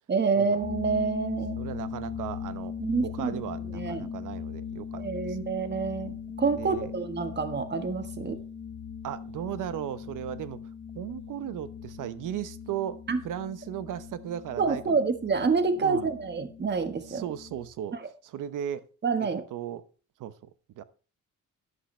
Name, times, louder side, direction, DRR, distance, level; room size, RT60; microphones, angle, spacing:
voice 1, 0.1-1.6 2.8-3.4 3.7-4.1 5.0-8.4 13.1-13.2 14.6-17.2 19.0-19.4, right 4 dB, 35° right, 1.4 m, -27 dB
sound 1, 0.6-17.7, left 7 dB, 40° left, 1.2 m, -40 dB
voice 2, 1.6-2.7 3.0-5.0 5.3-5.4 6.5-6.9 9.0-10.6 10.9-15.0 15.8-16.1 17.1-18.0 18.2-18.8 19.2-19.8 20.2-20.3 20.8-20.9, right 10 dB, 90° right, 0.9 m, -36 dB
11.5 x 11.0 x 3.3 m
cardioid pair, 110°, 31 cm